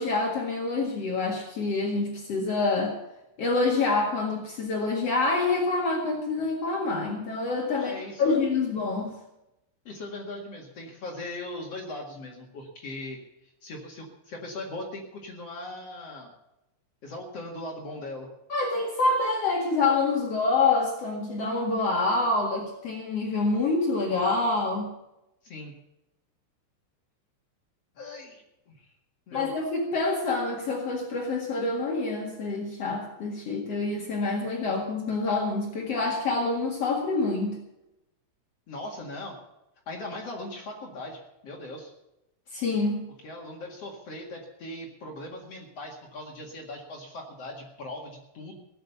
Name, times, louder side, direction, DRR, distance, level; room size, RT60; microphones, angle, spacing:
voice 1, 0.0-2.9 3.4-9.2 18.5-24.9 29.3-37.6 42.5-43.0, left 3 dB, 75° left, 0 dB, 1.4 m, -26 dB
voice 2, 7.7-8.4 9.8-13.2 13.6-16.3 17.0-18.3 25.4-25.7 27.9-28.9 29.3-29.5 38.7-39.4 39.8-41.9 43.2-48.6, left 2 dB, 60° left, 0 dB, 1.6 m, -39 dB
17.5 x 9.1 x 7.0 m, 0.90 s
omnidirectional pair, 5.9 m